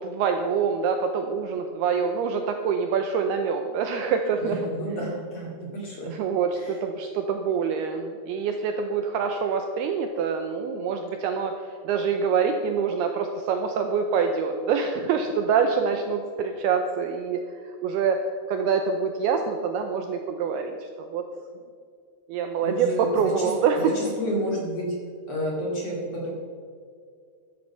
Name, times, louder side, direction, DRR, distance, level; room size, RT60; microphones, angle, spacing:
voice 1, 0.0-4.7 6.0-21.2 22.3-23.9, right 6 dB, 90° right, 5 dB, 2.3 m, -26 dB
voice 2, 4.4-6.1 6.6-6.8 22.6-24.9 25.3-26.3, equal, 40° left, -2 dB, 2.7 m, -31 dB
13.5 x 12.0 x 5.8 m, 2.2 s
omnidirectional pair, 5.5 m